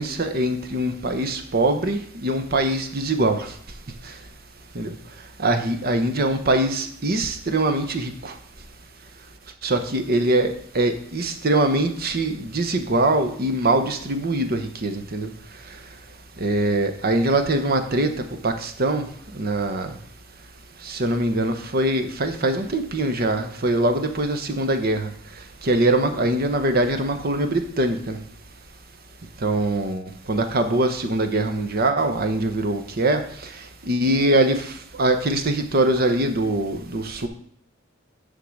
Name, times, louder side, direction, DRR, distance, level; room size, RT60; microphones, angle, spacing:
voice 1, 0.0-3.5 4.7-4.9 5.4-8.3 9.6-15.3 16.4-18.1 18.4-19.1 19.4-19.9 20.8-25.1 25.6-28.2 29.4-33.2 33.9-34.7 35.0-37.3, right 1 dB, 50° right, 1.0 m, -22 dB
10.0 x 3.9 x 6.3 m
head